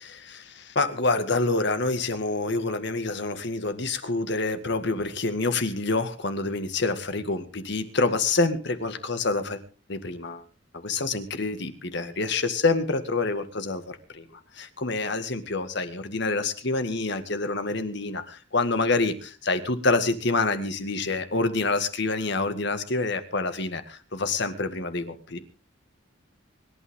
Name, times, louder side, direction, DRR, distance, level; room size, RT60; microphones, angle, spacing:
voice 1, 0.0-9.6 9.9-10.4 10.8-25.4, left 3 dB, 60° left, 9 dB, 1.9 m, -27 dB
25.0 x 12.0 x 3.7 m, 0.36 s
head